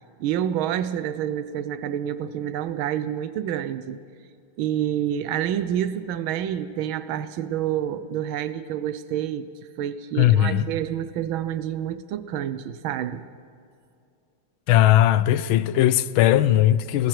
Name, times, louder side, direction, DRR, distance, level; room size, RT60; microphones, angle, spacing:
voice 1, 0.2-4.0 4.6-9.5 9.8-13.2, right 10 dB, 85° right, 1.6 m, -28 dB
voice 2, 10.2-10.6 14.7-17.1, left 12 dB, 85° left, 1.5 m, -18 dB
29.5 x 19.0 x 4.8 m
omnidirectional pair, 2.2 m